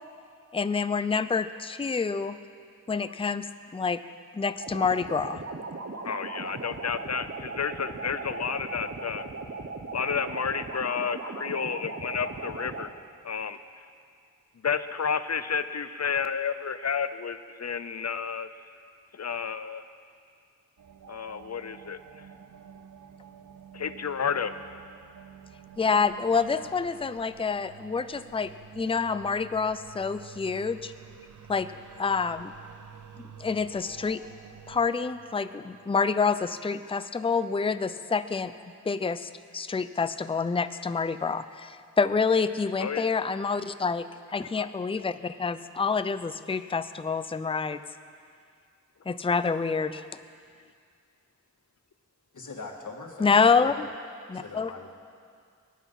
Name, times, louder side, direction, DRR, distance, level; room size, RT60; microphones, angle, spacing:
voice 1, 0.5-2.4 2.9-3.5 3.7-4.0 4.3-5.4 25.8-30.9 31.5-31.7 32.0-32.5 33.4-34.2 34.7-38.5 38.8-44.1 44.3-47.8 49.1-50.1 53.2-53.9 54.3-54.7, left 5 dB, 20° left, 12 dB, 0.4 m, -27 dB
sound 1, 4.6-12.9, right 3 dB, 45° right, 1.1 m, -38 dB
voice 2, 6.0-9.3 9.9-12.9 13.2-13.6 14.6-18.5 19.1-19.8 21.1-22.2 23.7-24.5 42.8-43.2 44.6-44.7, left 6 dB, 55° left, 12 dB, 0.7 m, -31 dB
sound 2, 20.8-37.0, right 8 dB, 70° right, 0.7 m, -50 dB
voice 3, 52.3-53.7 54.3-54.9, left 3 dB, 75° left, 1 dB, 1.8 m, -42 dB
21.5 x 9.4 x 5.6 m, 2.3 s
wide cardioid pair, 80°, 31 cm